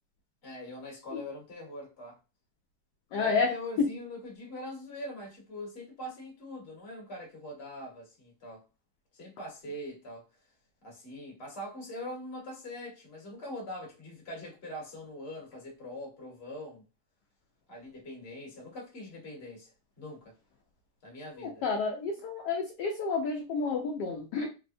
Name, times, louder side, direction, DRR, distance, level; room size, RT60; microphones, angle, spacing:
voice 1, 0.4-2.2 3.1-8.6 9.1-10.2 10.8-16.8 17.7-20.3 21.0-21.6, left 1 dB, 35° left, 1.2 m, -42 dB
voice 2, 3.1-3.9 21.4-24.5, left 4 dB, 75° left, 1.0 m, -30 dB
3.5 x 2.1 x 2.5 m
omnidirectional pair, 2.2 m